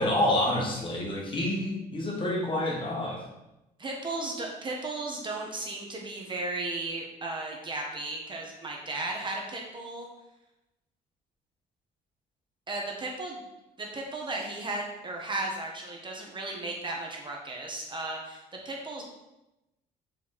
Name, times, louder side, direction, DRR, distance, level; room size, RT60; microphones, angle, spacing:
voice 1, 0.0-3.3, left 1 dB, 30° left, -2 dB, 1.1 m, -28 dB
voice 2, 3.8-10.1 12.7-13.4 13.8-19.0, right 2 dB, 30° right, 0 dB, 0.7 m, -35 dB
4.3 x 3.0 x 4.0 m, 0.94 s
cardioid pair, 110°, 17 cm